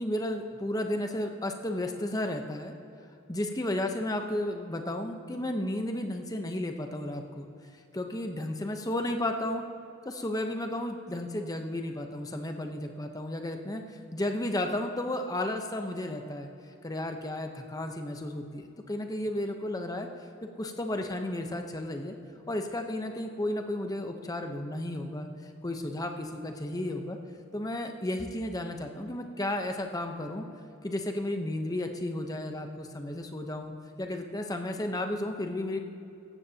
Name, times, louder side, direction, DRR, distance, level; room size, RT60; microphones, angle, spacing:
voice 1, 0.0-2.7 3.3-7.5 7.9-9.6 10.0-13.8 14.1-16.5 16.8-20.1 20.6-22.2 22.5-27.2 27.5-30.5 30.8-33.7 34.0-35.8, left 1 dB, 15° left, 5 dB, 0.8 m, -33 dB
17.5 x 14.5 x 2.8 m, 2.7 s
head